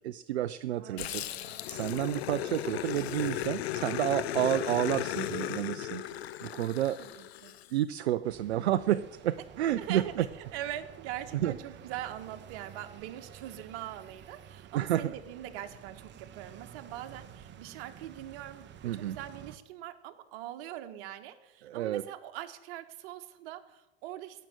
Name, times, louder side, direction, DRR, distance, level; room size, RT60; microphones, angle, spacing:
voice 1, 0.0-6.0 6.4-7.0 7.7-10.3 11.3-11.5 14.7-15.1 18.8-19.2 21.6-22.1, right 12 dB, 75° right, 13 dB, 0.6 m, -30 dB
voice 2, 0.8-1.6 7.0-7.5 9.8-10.3 10.5-24.5, right 12 dB, 60° right, 8 dB, 1.5 m, -42 dB
Growling, 1.0-7.7, left 12 dB, 70° left, 0.8 m, -36 dB
sound 1, 8.2-19.6, right 9 dB, 35° right, 1.1 m, -51 dB
16.0 x 6.7 x 9.0 m, 1.0 s
hypercardioid pair, 90°, 33 cm